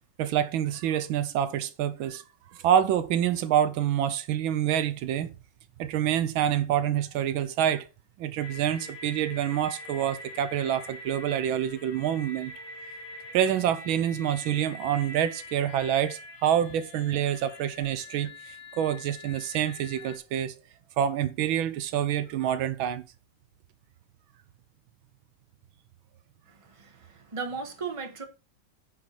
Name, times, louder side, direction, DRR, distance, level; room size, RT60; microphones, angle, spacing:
voice 1, 0.2-2.2 2.5-5.3 5.8-7.9 8.2-12.5 13.3-20.5 21.0-23.0, right 10 dB, 80° right, 1.4 m, -27 dB
sound 1, 8.4-20.2, left 2 dB, 45° left, 2.0 m, -44 dB
voice 2, 26.5-28.2, right 5 dB, 15° right, 1.4 m, -37 dB
9.8 x 6.0 x 4.7 m
omnidirectional pair, 2.3 m